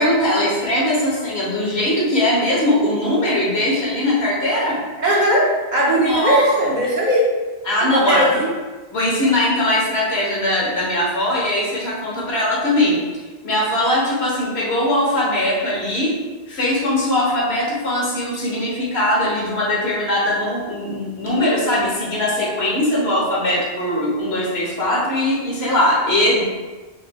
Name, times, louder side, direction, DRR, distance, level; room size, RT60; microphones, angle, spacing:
voice 1, 0.0-4.8 6.0-6.8 7.6-8.4 8.9-16.1 16.5-26.4, left 1 dB, 70° left, -5 dB, 1.3 m, -20 dB
voice 2, 5.0-7.3 7.9-8.5, equal, 50° right, -5 dB, 0.9 m, -18 dB
5.0 x 3.1 x 2.2 m, 1.3 s
omnidirectional pair, 1.1 m